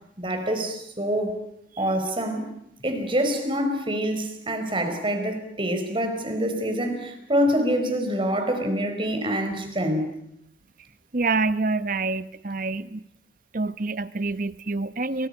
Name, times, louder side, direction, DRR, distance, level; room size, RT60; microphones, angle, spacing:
voice 1, 0.2-1.4 1.8-2.5 2.8-10.1, equal, 30° right, 6 dB, 4.6 m, -26 dB
voice 2, 11.1-13.1 13.5-15.3, right 3 dB, 50° right, 14 dB, 1.0 m, -27 dB
30.0 x 24.0 x 5.6 m, 0.73 s
head